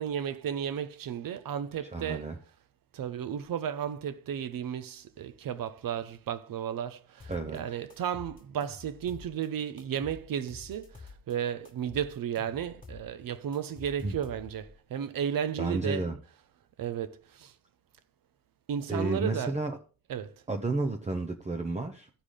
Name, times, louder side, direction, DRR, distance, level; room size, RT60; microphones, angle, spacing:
voice 1, 0.0-2.3 2.9-16.0 16.8-17.5 18.7-19.5 20.1-20.3, right 9 dB, 55° right, 0.9 m, -34 dB
voice 2, 1.9-2.4 7.3-7.6 14.0-14.2 15.6-16.2 18.9-19.8 20.5-22.1, right 2 dB, 15° right, 0.9 m, -31 dB
sound 1, 7.2-7.6 7.9-9.5 9.8-11.3 11.6-14.7, left 4 dB, 20° left, 1.9 m, -48 dB
14.5 x 4.9 x 3.7 m
supercardioid pair, 60°, 41 cm